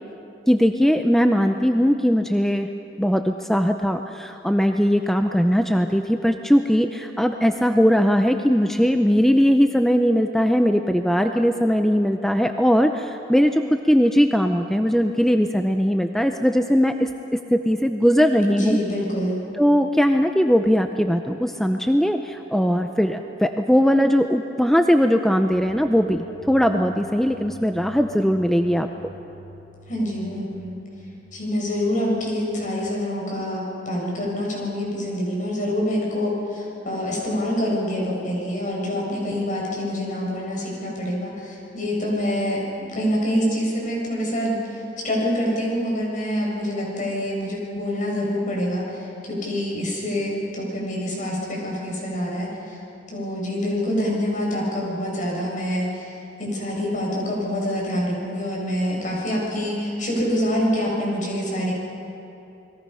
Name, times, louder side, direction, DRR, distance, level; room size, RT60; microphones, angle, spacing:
voice 1, 0.5-2.7 3.0-18.8 19.6-29.1, equal, ahead, 6 dB, 0.6 m, -20 dB
voice 2, 18.5-19.4 29.9-30.7 31.3-44.8 45.0-52.8 53.1-61.7, equal, 45° left, -3 dB, 7.0 m, -26 dB
sound 1, 25.5-32.8, right 1 dB, 20° left, 5.0 m, -46 dB
29.5 x 21.5 x 5.6 m, 2.9 s
head